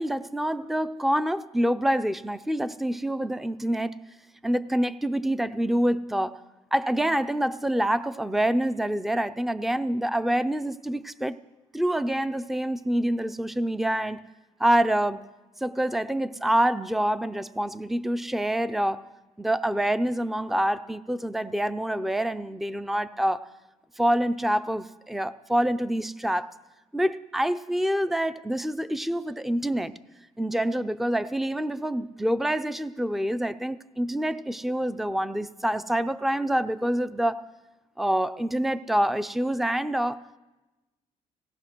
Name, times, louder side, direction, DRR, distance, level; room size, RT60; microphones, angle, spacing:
voice 1, 0.0-4.0 4.4-6.4 6.7-11.4 11.7-14.2 14.6-15.2 15.6-19.0 19.4-23.5 24.0-26.6 26.9-29.9 30.4-37.6 38.0-40.2, right 1 dB, ahead, 13 dB, 0.6 m, -26 dB
27.0 x 18.5 x 6.2 m, 1.1 s
cardioid pair, 125°, 13 cm